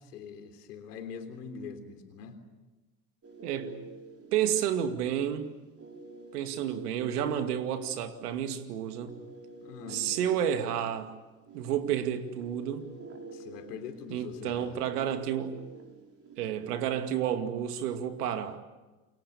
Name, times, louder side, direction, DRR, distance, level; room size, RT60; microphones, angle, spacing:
voice 1, 0.1-2.4 9.6-10.1 13.3-14.8, left 6 dB, 80° left, 7 dB, 3.6 m, -43 dB
sound 1, 3.2-16.9, right 3 dB, 30° right, 5.1 m, -48 dB
voice 2, 3.4-3.7 4.3-5.5 6.3-9.2 9.9-11.1 11.5-12.9 14.1-15.6 16.4-18.6, right 9 dB, 75° right, 8 dB, 2.4 m, -30 dB
29.0 x 22.5 x 7.0 m, 1.2 s
hypercardioid pair, 85°, 46 cm